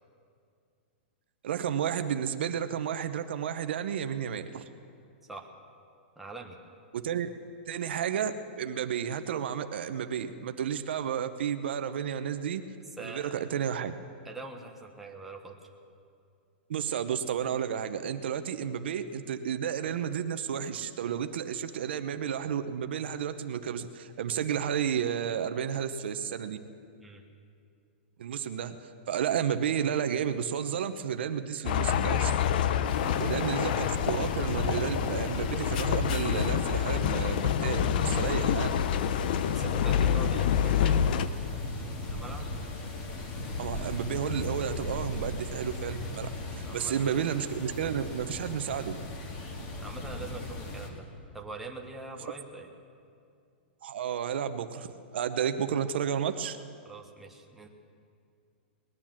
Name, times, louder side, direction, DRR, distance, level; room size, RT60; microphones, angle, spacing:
voice 1, 1.4-4.6 6.9-7.3 7.7-12.6 13.0-14.0 16.7-26.6 28.2-28.8 29.1-32.3 33.2-38.7 43.6-46.3 46.6-49.0 53.8-54.9 55.1-56.6, right 8 dB, 70° right, 9 dB, 0.8 m, -32 dB
voice 2, 6.2-6.6 13.0-13.3 14.2-15.6 27.0-27.2 33.0-33.6 39.2-42.5 46.6-47.4 49.4-51.1 51.3-52.7 56.8-57.7, right 3 dB, 5° right, 0 dB, 1.1 m, -44 dB
sound 1, 31.6-41.3, left 9 dB, 55° left, 0.6 m, -27 dB
sound 2, 32.8-50.9, left 1 dB, 35° left, 2.1 m, -38 dB
20.0 x 9.8 x 7.4 m, 2.4 s
hypercardioid pair, 160°, 6 cm